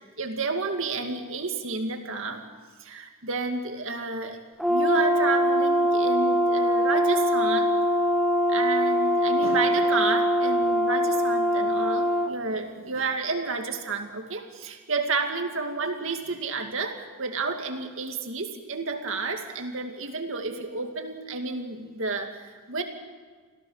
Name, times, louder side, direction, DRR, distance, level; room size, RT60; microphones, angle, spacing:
voice 1, 0.2-2.4 2.8-4.4 4.7-7.8 8.5-22.8, right 3 dB, 65° right, 4 dB, 2.2 m, -31 dB
Brass instrument, 4.6-12.3, equal, ahead, 1.4 m, -23 dB
26.0 x 16.5 x 6.5 m, 1.5 s
head